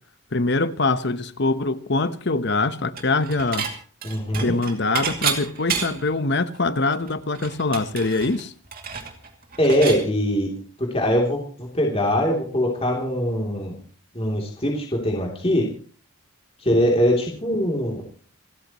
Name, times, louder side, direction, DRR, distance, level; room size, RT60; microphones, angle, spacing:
voice 1, 0.3-3.7 4.4-8.5, left 3 dB, 55° left, 1.0 m, -23 dB
Dishes pots and pans / Chink clink, 3.0-3.7 4.0-6.1 6.6-6.7 6.9-10.0, right 7 dB, 45° right, 2.5 m, -29 dB
voice 2, 4.0-4.5 9.6-10.5 10.8-13.8 14.1-15.7 16.6-18.0, equal, 25° left, 3.1 m, -22 dB
29.0 x 13.5 x 3.1 m
head